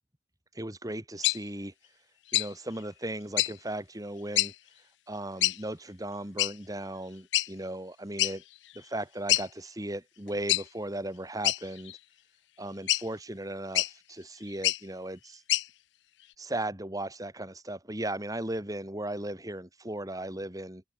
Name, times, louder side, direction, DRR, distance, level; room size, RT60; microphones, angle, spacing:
voice 1, 0.5-2.0 2.3-8.4 8.7-12.0 12.6-15.4 16.4-20.8, right 1 dB, 20° right, 2.9 m, -37 dB
sound 1, 1.2-1.4 2.3-2.5 3.4-3.5 4.3-4.5 5.4-5.6 6.4-6.5 7.3-7.5 8.2-8.3 8.8-8.9 9.3-9.4 10.5-10.6 11.4-12.0 12.9-13.0 13.7-13.9 14.5-14.8 15.5-15.7, left 16 dB, 65° left, 0.5 m, -25 dB
head